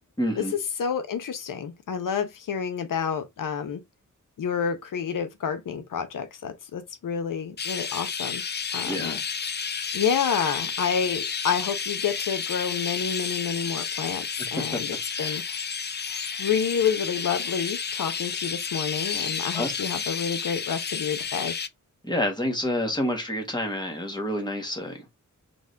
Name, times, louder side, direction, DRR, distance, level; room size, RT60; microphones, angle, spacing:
voice 1, 0.2-0.5 8.9-9.2 14.7-14.8 15.1-15.4 19.5-19.8 22.0-25.0, left 1 dB, 15° left, 1.5 m, -28 dB
voice 2, 0.8-3.8 4.4-8.4 8.7-9.2 9.9-14.2 14.5-15.4 16.4-21.5, left 7 dB, 85° left, 0.7 m, -29 dB
Chirp tweet, 7.6-21.7, left 6 dB, 35° left, 0.4 m, -31 dB
4.0 x 3.7 x 3.2 m
wide cardioid pair, 115°, 31 cm